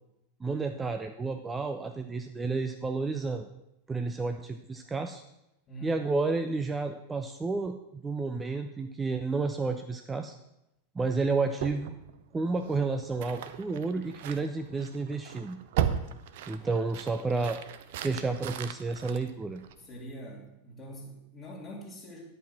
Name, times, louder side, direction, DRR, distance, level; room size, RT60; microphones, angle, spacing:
voice 1, 0.4-3.5 3.9-5.2 5.8-10.3 11.0-12.0 12.3-15.6 16.5-17.6 18.0-19.6, right 3 dB, 15° right, 6 dB, 0.5 m, -31 dB
voice 2, 5.7-6.0 19.8-22.2, equal, 30° left, -4 dB, 2.5 m, -44 dB
sound 1, 11.6-20.0, right 9 dB, 50° right, 0.6 m, -37 dB
10.5 x 5.6 x 5.9 m, 0.86 s
figure-of-eight pair, 90°, 0 cm